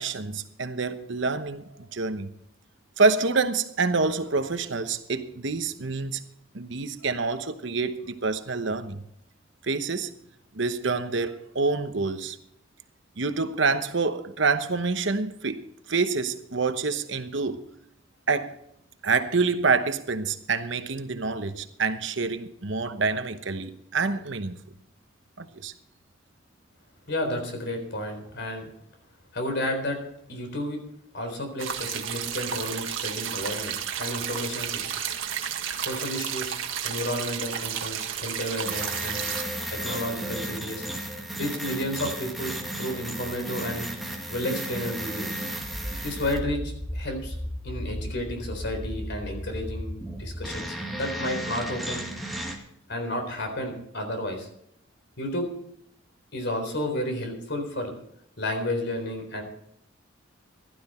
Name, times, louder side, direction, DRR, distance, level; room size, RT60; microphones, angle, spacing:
voice 1, 0.0-2.3 3.0-6.3 6.5-9.0 9.6-10.1 10.5-12.4 13.2-17.6 18.3-18.6 19.0-24.6 25.4-25.7, right 4 dB, 65° right, 1.0 m, -27 dB
voice 2, 27.1-28.7 29.3-30.0 30.3-30.8 31.1-34.8 35.8-36.6 36.8-39.2 39.7-40.9 41.3-43.8 44.3-45.4 46.0-47.4 47.6-52.0 52.9-54.5 55.2-55.5 56.3-57.9 58.4-59.4, left 1 dB, 60° left, 4.1 m, -32 dB
sound 1, 31.6-39.4, right 9 dB, 90° right, 1.5 m, -32 dB
sound 2, 38.6-52.6, right 1 dB, ahead, 2.1 m, -34 dB
15.5 x 12.0 x 4.4 m
head